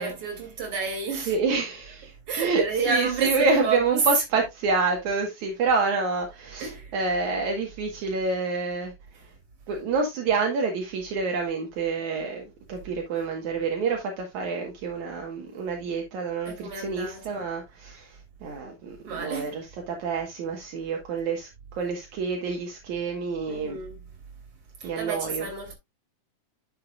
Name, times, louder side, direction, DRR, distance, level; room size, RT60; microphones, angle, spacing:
voice 1, 0.0-1.3 2.3-4.1 6.6-6.9 9.1-9.2 16.4-17.5 19.1-19.5 23.5-24.1 24.8-25.7, right 5 dB, 45° right, 3.5 m, -30 dB
voice 2, 1.1-8.9 9.2-9.3 9.7-12.4 12.7-19.6 19.9-23.8 24.8-25.5, right 4 dB, 70° right, 2.8 m, -28 dB
10.5 x 6.8 x 2.4 m
omnidirectional pair, 3.6 m